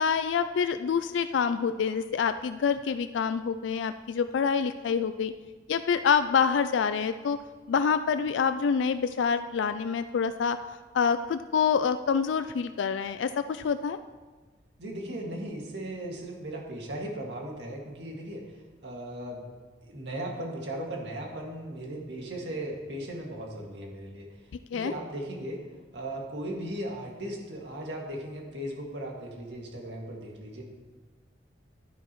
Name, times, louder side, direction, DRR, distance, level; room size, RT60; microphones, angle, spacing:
voice 1, 0.0-5.3 5.7-7.4 7.7-10.6 10.9-14.0 24.7-24.9, left 6 dB, 80° left, 11 dB, 0.4 m, -26 dB
voice 2, 14.8-18.5 18.8-19.4 19.8-24.3 24.7-25.6 25.9-30.6, right 1 dB, 65° right, -1 dB, 2.2 m, -37 dB
11.5 x 11.0 x 3.1 m, 1.4 s
head